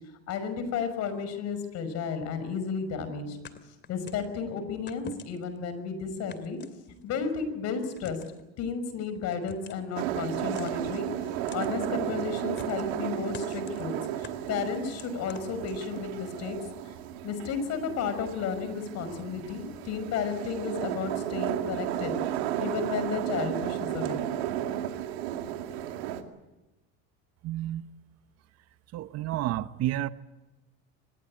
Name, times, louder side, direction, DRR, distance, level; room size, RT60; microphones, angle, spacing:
voice 1, 0.3-3.4 3.9-6.6 7.0-8.2 8.6-11.1 11.5-16.6 17.2-22.1 22.6-24.2, left 6 dB, 60° left, 11 dB, 5.7 m, -33 dB
sound 1, 3.4-4.3 4.9-5.6 6.3-7.2 8.0-8.4 9.3-9.9 10.5-11.0 11.5-11.7 12.6-13.0 13.3-13.8 14.2-16.1, left 6 dB, 35° left, 2.6 m, -46 dB
sound 2, 10.0-26.2, right 11 dB, 85° right, 2.4 m, -33 dB
voice 2, 27.4-27.8 28.9-30.1, right 14 dB, 55° right, 14 dB, 1.1 m, -30 dB
24.5 x 21.0 x 8.7 m, 1.0 s
supercardioid pair, 100°, 31 cm